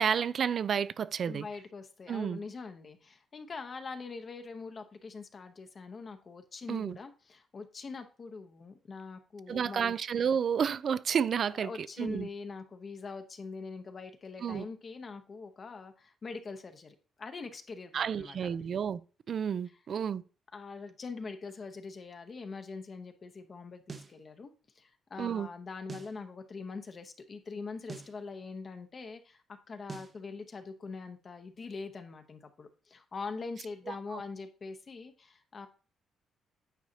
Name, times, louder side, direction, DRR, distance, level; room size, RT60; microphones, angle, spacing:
voice 1, 0.0-1.5 2.1-2.4 6.7-7.0 9.5-12.3 14.4-14.7 17.9-19.0 19.3-20.2 25.2-25.5 33.9-34.0, right 7 dB, 55° right, 0.3 m, -31 dB
voice 2, 1.3-10.0 11.4-18.4 20.5-35.7, left 4 dB, 40° left, 0.8 m, -43 dB
sound 1, 23.9-24.2 25.9-26.2 27.9-28.2 29.9-30.2, right 4 dB, 35° right, 0.7 m, -44 dB
9.1 x 4.8 x 2.8 m
cardioid pair, 90°, 0 cm